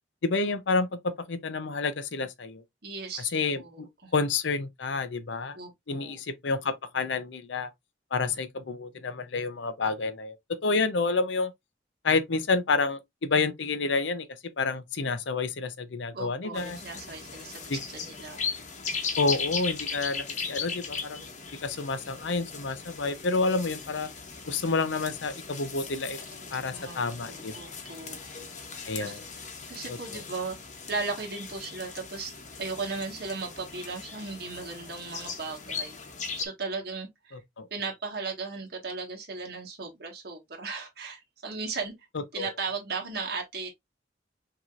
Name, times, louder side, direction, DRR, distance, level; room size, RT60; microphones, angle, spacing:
voice 1, 0.2-2.6 3.3-3.9 4.1-5.6 5.9-7.7 8.1-10.4 10.6-11.5 12.0-14.3 14.6-16.8 17.7-17.8 19.2-21.2 21.6-24.1 24.5-26.2 26.5-27.8 28.8-29.2 29.9-30.2 37.3-37.7 42.4-42.5, left 3 dB, 85° left, 0.7 m, -29 dB
voice 2, 2.8-4.1 5.6-6.2 16.1-17.6 18.0-18.5 26.6-27.0 27.3-28.2 29.0-29.2 29.7-30.6 30.9-32.3 32.6-36.0 36.4-37.4 37.7-41.9 42.3-43.7, right 4 dB, 60° right, 1.7 m, -36 dB
sound 1, 16.5-36.5, left 5 dB, 40° left, 1.0 m, -38 dB
6.0 x 2.9 x 2.5 m
head